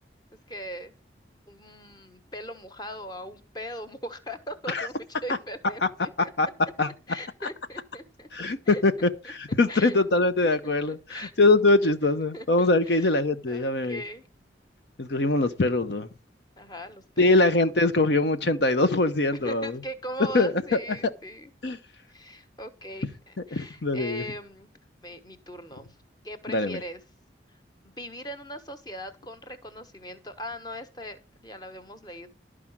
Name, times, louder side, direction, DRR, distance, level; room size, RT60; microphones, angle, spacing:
voice 1, 0.5-0.9 1.5-6.3 7.1-9.3 9.7-10.2 10.6-11.3 12.3-13.1 13.5-14.2 16.6-17.4 19.4-21.5 22.1-24.7 25.0-25.9 26.2-27.0 27.5-27.6 27.8-32.3, equal, 20° left, 1.2 m, -40 dB
voice 2, 8.3-14.0 15.0-16.1 17.2-19.8 20.3-20.8 21.6-21.8 23.5-24.2 26.5-26.8, left 2 dB, 65° left, 0.8 m, -23 dB
12.5 x 4.9 x 7.2 m
head